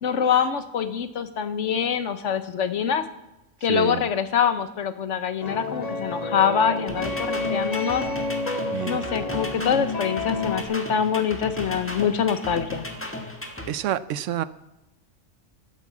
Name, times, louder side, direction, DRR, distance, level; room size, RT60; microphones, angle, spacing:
voice 1, 0.0-3.0 3.6-8.1 8.8-12.9, left 7 dB, 75° left, 11 dB, 1.2 m, -24 dB
voice 2, 3.6-4.1 8.7-9.0 13.7-14.4, right 11 dB, 80° right, 15 dB, 1.0 m, -28 dB
sound 1, 5.4-10.6, left 3 dB, 35° left, 1.5 m, -29 dB
sound 2, 6.9-13.7, left 1 dB, 10° left, 1.5 m, -35 dB
10.5 x 10.5 x 7.4 m, 0.93 s
omnidirectional pair, 1.3 m